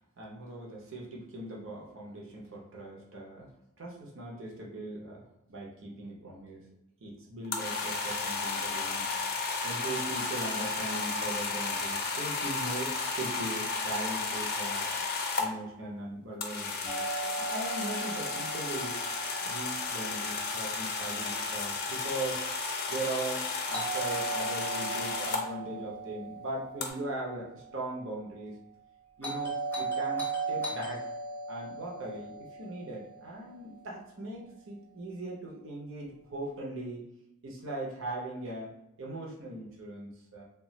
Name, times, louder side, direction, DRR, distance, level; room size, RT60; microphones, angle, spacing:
voice 1, 0.2-3.5 3.8-6.7 7.0-9.0 9.6-14.8 15.4-19.0 19.4-22.5 22.9-28.5 29.2-31.0 31.5-32.3 32.6-37.1 37.4-38.7 39.0-40.4, right 2 dB, 60° right, -2 dB, 0.7 m, -39 dB
sound 1, 7.4-15.5 16.4-25.4 26.8-26.9, left 4 dB, 45° left, 0.5 m, -33 dB
Doorbell, 16.9-20.8 23.7-27.9 29.2-33.6, right 3 dB, 10° left, 0.8 m, -37 dB
2.4 x 2.2 x 3.8 m, 0.86 s
head